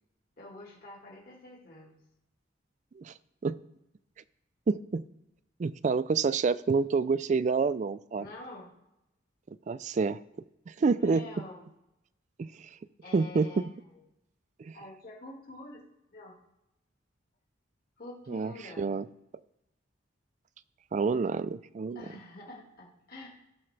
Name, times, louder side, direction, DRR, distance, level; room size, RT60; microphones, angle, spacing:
voice 1, 0.4-2.0 8.2-8.7 10.9-11.6 13.0-14.0 14.7-15.8 16.1-16.4 18.0-19.0 21.9-23.3, left 2 dB, 50° left, -2 dB, 1.9 m, -47 dB
voice 2, 4.7-5.0 5.6-8.2 9.7-10.2 10.7-11.2 12.4-12.7 13.1-13.6 14.6-14.8 18.3-19.1 20.9-22.0, right 4 dB, 40° right, 16 dB, 0.3 m, -28 dB
16.5 x 5.6 x 3.3 m, 0.89 s
head